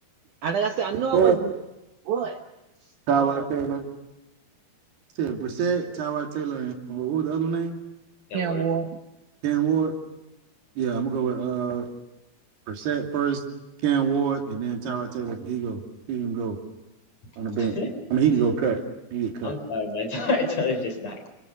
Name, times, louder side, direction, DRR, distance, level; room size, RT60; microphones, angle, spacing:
voice 1, 0.4-1.4 2.1-2.4 3.1-3.5 8.3-8.9, right 7 dB, 65° right, 5 dB, 2.2 m, -26 dB
voice 2, 3.1-3.9 5.2-7.8 9.4-9.9 10.8-11.9 12.7-13.4 13.8-15.8 16.1-16.6 17.4-17.8 18.1-18.8 19.1-19.6, right 7 dB, 80° right, 3 dB, 4.8 m, -25 dB
voice 3, 8.3-8.6 17.6-17.9 19.4-21.3, left 3 dB, 45° left, 5 dB, 4.9 m, -28 dB
28.5 x 24.5 x 6.7 m, 0.98 s
omnidirectional pair, 4.5 m